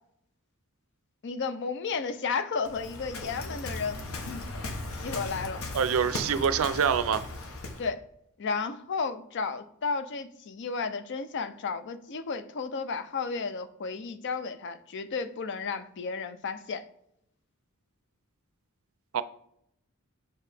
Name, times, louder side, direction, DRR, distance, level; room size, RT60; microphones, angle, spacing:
voice 1, 1.2-4.4 5.0-5.6 7.8-8.0 8.4-16.9, left 5 dB, 55° left, 11 dB, 0.5 m, -33 dB
Waves surf, 2.6-7.9, left 2 dB, 70° left, 0.9 m, -37 dB
voice 2, 5.7-7.2 19.1-19.2, right 7 dB, 65° right, 15 dB, 0.4 m, -25 dB
6.9 x 4.7 x 3.4 m, 0.77 s
head